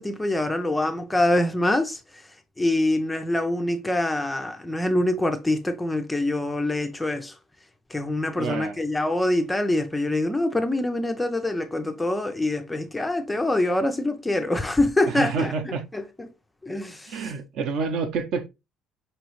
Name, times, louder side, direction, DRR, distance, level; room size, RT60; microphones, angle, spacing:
voice 1, 0.0-2.0 2.6-7.3 7.9-16.3 16.6-17.3, left 1 dB, 5° left, 0.4 m, -25 dB
voice 2, 8.4-8.8 15.1-15.8 17.1-18.5, right 5 dB, 55° right, 0.7 m, -28 dB
5.4 x 3.0 x 3.0 m
cardioid pair, 175°, 0 cm